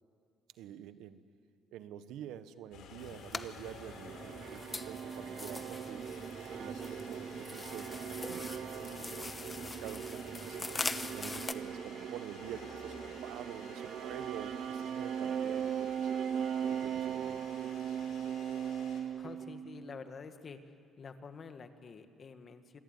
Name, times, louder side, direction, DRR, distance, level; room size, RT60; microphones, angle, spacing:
voice 1, 0.6-1.2 1.7-6.0 6.5-9.2 9.6-10.7 11.1-16.1 16.7-18.0, right 10 dB, 85° right, 12 dB, 1.1 m, -48 dB
sound 1, 2.7-19.0, left 5 dB, 75° left, 4.8 m, -52 dB
sound 2, 3.0-11.5, left 3 dB, 20° left, 1.1 m, -43 dB
sound 3, 3.8-20.1, right 8 dB, 55° right, 0.7 m, -39 dB
voice 2, 19.2-20.6 21.0-22.8, left 5 dB, 40° left, 8 dB, 1.8 m, -48 dB
27.0 x 20.5 x 9.6 m, 2.3 s
cardioid pair, 120°, 0 cm